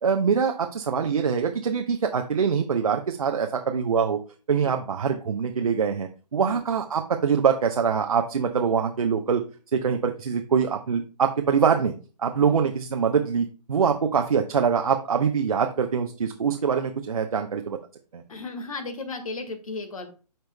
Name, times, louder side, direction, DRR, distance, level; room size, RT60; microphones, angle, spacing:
voice 1, 0.0-4.2 4.5-9.4 9.7-11.9 12.2-17.8 18.1-18.2, right 6 dB, 60° right, 4 dB, 0.8 m, -24 dB
voice 2, 18.3-20.1, left 3 dB, 55° left, 7 dB, 1.7 m, -35 dB
12.0 x 4.5 x 2.2 m, 0.35 s
figure-of-eight pair, 135°, 21 cm